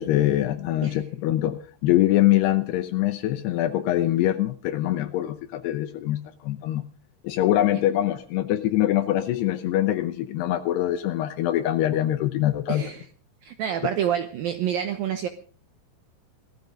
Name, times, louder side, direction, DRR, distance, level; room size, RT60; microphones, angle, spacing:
voice 1, 0.0-6.8 7.2-12.8, left 14 dB, 75° left, 9 dB, 2.5 m, -24 dB
voice 2, 12.7-13.1 13.4-15.3, right 9 dB, 75° right, 8 dB, 2.1 m, -28 dB
18.0 x 13.5 x 5.1 m, 0.43 s
omnidirectional pair, 5.4 m